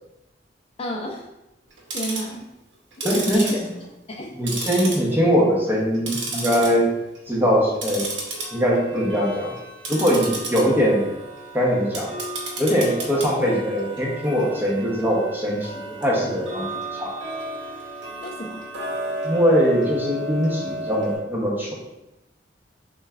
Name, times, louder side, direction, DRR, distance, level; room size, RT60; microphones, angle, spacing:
voice 1, 0.8-1.2 1.9-2.5 3.0-3.6 4.1-4.3 18.2-18.6, equal, 35° left, 0 dB, 0.4 m, -31 dB
Tick-tock, 1.7-2.3 2.9-4.2 4.5-5.3 5.7-6.7 7.1-7.3 7.7-21.2, right 2 dB, 75° right, 0.8 m, -33 dB
voice 2, 3.0-3.5 4.3-6.9 7.3-8.1 8.5-9.5 9.9-11.0 11.5-12.1 12.6-15.7 16.0-16.6 16.9-17.1 19.2-21.7, equal, 10° right, -3 dB, 0.8 m, -21 dB
6.3 x 2.2 x 2.4 m, 0.93 s
head